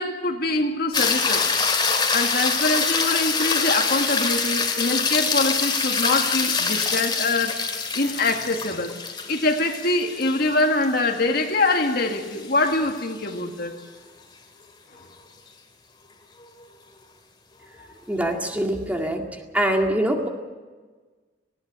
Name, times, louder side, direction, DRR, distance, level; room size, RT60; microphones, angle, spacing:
voice 1, 0.0-1.5 2.1-7.6 7.9-9.0 9.3-13.8, left 2 dB, 55° left, 4 dB, 2.0 m, -24 dB
sound 1, 0.9-13.3 17.8-17.9, left 5 dB, 25° left, 2.3 m, -25 dB
voice 2, 18.1-19.3 19.5-20.3, right 1 dB, 10° right, 2 dB, 2.0 m, -23 dB
19.5 x 17.5 x 8.8 m, 1.4 s
head